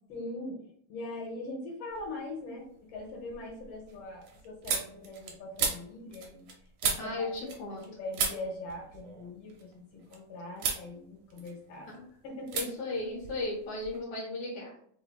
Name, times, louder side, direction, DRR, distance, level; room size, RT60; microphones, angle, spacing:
voice 1, 0.1-6.5 6.8-11.9 12.2-12.7, left 2 dB, 65° left, -1 dB, 1.7 m, -41 dB
sound 1, 1.9-2.4 2.8-7.9 8.1-10.2 10.6-10.9 11.2-12.0 12.5-12.7 12.9-14.0, right 5 dB, 75° right, 1.6 m, -36 dB
voice 2, 7.0-7.9 11.9-12.1 12.5-14.7, left 2 dB, 90° left, -2 dB, 2.1 m, -36 dB
5.9 x 2.7 x 2.2 m, 0.63 s
omnidirectional pair, 2.4 m